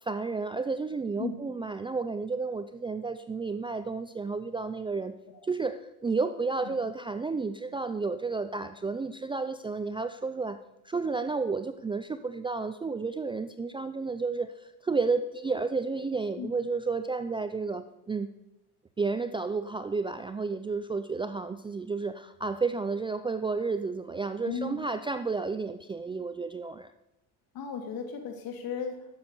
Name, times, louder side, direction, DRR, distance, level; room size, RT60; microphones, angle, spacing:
voice 1, 0.0-5.1 5.4-10.6 10.8-18.3 19.0-26.9, right 4 dB, 15° right, 11 dB, 0.4 m, -31 dB
voice 2, 24.4-24.8 27.5-29.0, left 5 dB, 55° left, 4 dB, 3.2 m, -35 dB
12.0 x 9.6 x 7.2 m, 0.94 s
cardioid pair, 125°, 41 cm